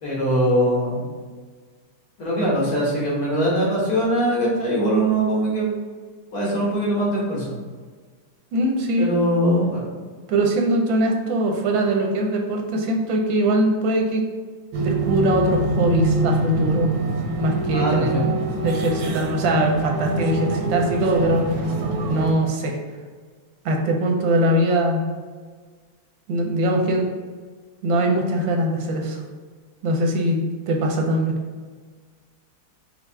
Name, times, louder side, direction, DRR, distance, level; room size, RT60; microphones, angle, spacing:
voice 1, 0.0-1.1 2.2-5.7 6.3-7.6 9.0-9.8 17.7-18.2, equal, 55° left, -5 dB, 1.6 m, -21 dB
voice 2, 8.5-9.1 10.3-14.2 14.8-16.9 17.4-18.1 18.6-21.7 22.1-22.8 23.6-25.0 26.3-27.1 27.8-29.2 29.8-30.4 30.7-31.3, right 1 dB, 90° right, 2 dB, 1.5 m, -21 dB
sound 1, 14.7-22.3, right 2 dB, 65° right, 1.0 m, -24 dB
5.5 x 2.4 x 3.4 m, 1.5 s
omnidirectional pair, 2.0 m